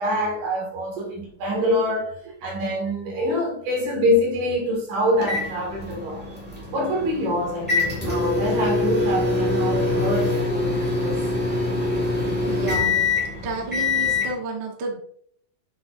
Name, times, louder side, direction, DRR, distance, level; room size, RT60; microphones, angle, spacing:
voice 1, 0.0-2.1 2.4-6.2 6.7-11.3, equal, 75° right, 3.3 m, -25 dB
sound 1, 5.2-14.3, left 3 dB, 15° right, 0.3 m, -24 dB
voice 2, 12.2-13.1 13.4-15.0, right 3 dB, 55° right, 1.1 m, -31 dB
7.3 x 6.2 x 2.5 m
omnidirectional pair, 3.6 m